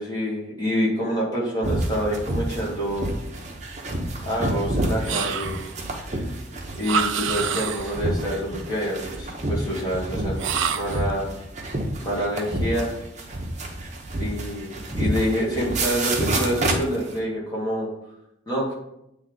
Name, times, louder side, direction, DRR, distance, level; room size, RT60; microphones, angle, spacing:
voice 1, 0.0-3.1 4.2-5.6 6.0-6.1 6.7-10.4 10.7-11.3 12.0-12.9 14.2-17.9 18.5-18.7, equal, 20° left, -5 dB, 2.0 m, -27 dB
sound 1, 1.6-17.2, right 1 dB, 35° right, 0.9 m, -29 dB
sound 2, 5.0-5.8 6.8-8.0 10.4-11.1, right 7 dB, 75° right, 0.4 m, -27 dB
8.3 x 3.4 x 3.9 m, 0.82 s
head